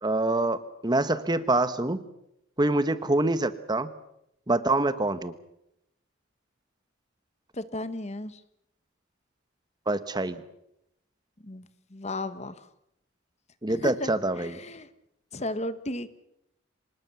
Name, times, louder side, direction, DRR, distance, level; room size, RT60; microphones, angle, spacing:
voice 1, 0.0-2.0 2.6-3.9 4.5-5.3 9.9-10.4 13.6-14.6, right 2 dB, 20° right, 13 dB, 1.1 m, -25 dB
voice 2, 7.5-8.4 11.4-11.7 11.9-12.7 13.7-14.1 14.4-14.9 15.3-16.1, left 2 dB, 35° left, 13 dB, 1.2 m, -34 dB
25.0 x 20.0 x 6.9 m, 0.80 s
head